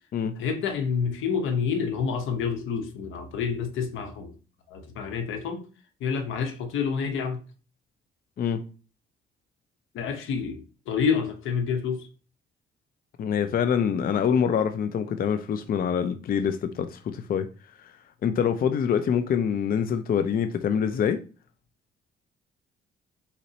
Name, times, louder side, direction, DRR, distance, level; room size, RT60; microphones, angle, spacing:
voice 1, 0.4-4.3 4.7-5.7 6.0-7.4 9.9-10.6 10.9-12.1, left 6 dB, 85° left, 0.9 m, -28 dB
voice 2, 13.2-17.5 17.8-17.9 18.2-21.2, left 7 dB, 45° left, 0.5 m, -25 dB
4.2 x 4.1 x 2.8 m
cardioid pair, 90°, 20 cm